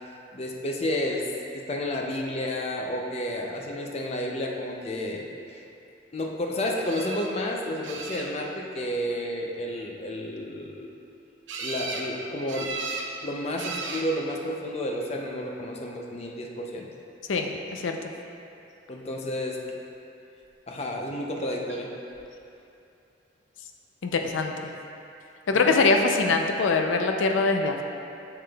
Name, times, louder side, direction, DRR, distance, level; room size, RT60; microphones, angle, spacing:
voice 1, 0.3-1.3 1.5-5.6 6.1-10.9 11.6-12.8 13.2-16.9 18.9-19.8 20.7-22.0 25.5-25.7, left 1 dB, 35° left, 0 dB, 0.5 m, -31 dB
sound 1, 6.8-7.3 7.8-8.6 11.5-12.1 12.5-13.1 13.6-14.1 15.0-15.5 21.7-21.8 22.1-22.2, right 4 dB, 75° right, 0.7 m, -35 dB
voice 2, 17.3-18.1 24.0-24.5 25.5-27.8, left 3 dB, 85° left, 4 dB, 0.5 m, -23 dB
7.4 x 6.8 x 2.3 m, 2.7 s
head